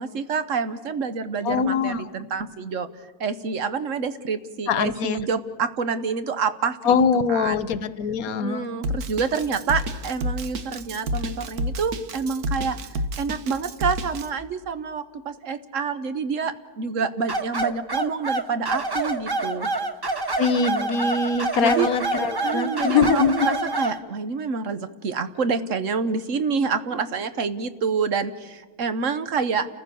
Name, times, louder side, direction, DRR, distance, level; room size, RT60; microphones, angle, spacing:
voice 1, 0.0-2.9 3.2-7.0 7.3-7.6 8.3-12.8 13.2-19.7 21.6-21.9 22.4-29.7, right 5 dB, 60° right, 11 dB, 1.2 m, -27 dB
voice 2, 1.4-2.0 4.7-5.2 6.9-8.7 20.4-23.3, left 5 dB, 75° left, 15 dB, 1.3 m, -22 dB
Drum kit, 8.8-14.3, equal, 85° right, 1.6 m, -29 dB
sound 1, 17.3-24.0, right 2 dB, 25° right, 0.6 m, -27 dB
30.0 x 14.5 x 6.9 m, 1.3 s
omnidirectional pair, 1.5 m